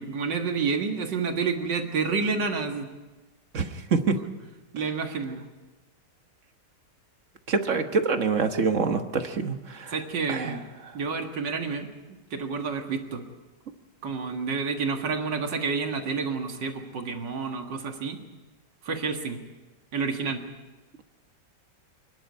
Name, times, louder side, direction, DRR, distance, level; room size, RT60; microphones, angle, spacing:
voice 1, 0.0-2.9 4.2-4.3 4.7-5.4 9.9-10.6 10.9-13.2 14.0-18.2 18.8-19.4 19.9-20.4, right 5 dB, 85° right, 4 dB, 2.5 m, -29 dB
voice 2, 3.5-4.2 7.5-9.9 10.3-10.6, right 4 dB, 50° right, 7 dB, 1.5 m, -26 dB
26.0 x 11.0 x 9.4 m, 1.2 s
omnidirectional pair, 1.9 m